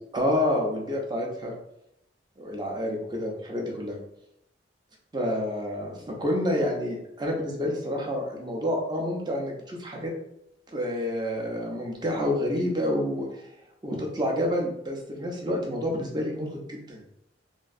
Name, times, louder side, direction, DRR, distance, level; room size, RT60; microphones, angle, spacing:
voice 1, 0.1-1.5 2.4-4.0 5.1-10.1 10.7-13.3 13.8-17.2, left 1 dB, 25° right, 0 dB, 0.5 m, -28 dB
3.0 x 2.5 x 2.4 m, 0.80 s
head